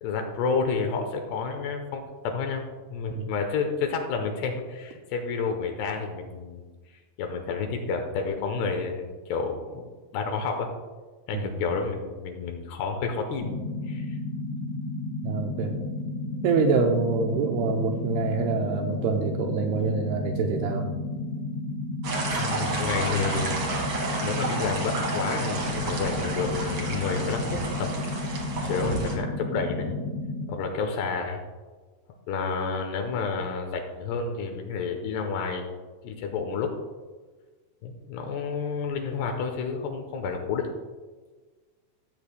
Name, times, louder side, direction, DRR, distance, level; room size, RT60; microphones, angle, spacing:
voice 1, 0.0-2.6 2.9-6.7 7.2-9.9 10.1-10.7 11.3-14.2 22.4-27.9 28.6-30.0 30.5-31.4 32.3-35.6 36.0-36.7 37.8-40.7, left 5 dB, 75° left, 4 dB, 2.8 m, -30 dB
sound 1, 13.3-30.5, left 2 dB, 60° left, 2.2 m, -33 dB
voice 2, 15.2-15.8 16.4-20.9 22.3-22.4, right 4 dB, 85° right, 2 dB, 2.3 m, -26 dB
sound 2, 22.0-29.2, right 3 dB, 55° right, 1.4 m, -31 dB
15.5 x 8.1 x 2.2 m, 1.4 s
omnidirectional pair, 5.2 m